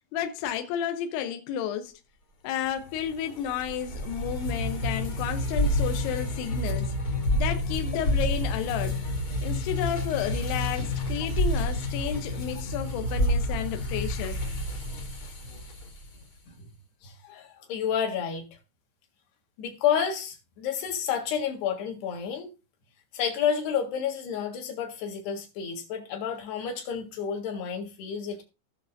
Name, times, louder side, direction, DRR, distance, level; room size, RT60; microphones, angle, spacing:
voice 1, 0.1-2.0 2.4-6.9 7.3-9.0 9.4-14.4, left 9 dB, 80° left, 2.3 m, -32 dB
sound 1, 2.8-16.2, left 1 dB, 35° left, 2.1 m, -29 dB
voice 2, 17.0-18.4 19.6-22.5 23.1-28.4, left 8 dB, 65° left, 3.4 m, -30 dB
17.0 x 6.5 x 2.6 m
omnidirectional pair, 5.7 m